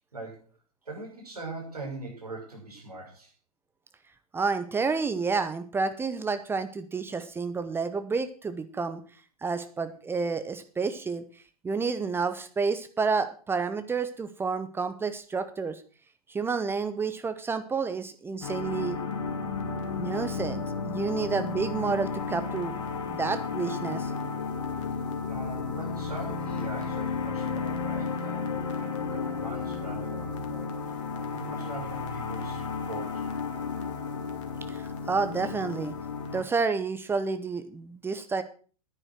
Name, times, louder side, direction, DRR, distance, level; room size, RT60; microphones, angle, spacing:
voice 1, 0.1-0.5 0.8-3.3 25.3-33.7, right 2 dB, 80° right, -1 dB, 6.2 m, -42 dB
voice 2, 4.3-9.0 9.4-11.2 11.6-15.8 16.3-19.0 20.0-22.7 23.1-24.1 34.7-35.9 36.3-38.4, right 4 dB, 10° right, 10 dB, 0.9 m, -30 dB
sound 1, 18.4-36.4, left 5 dB, 55° left, 2.3 m, -33 dB
9.9 x 9.9 x 6.2 m, 0.39 s
figure-of-eight pair, 100°, 19 cm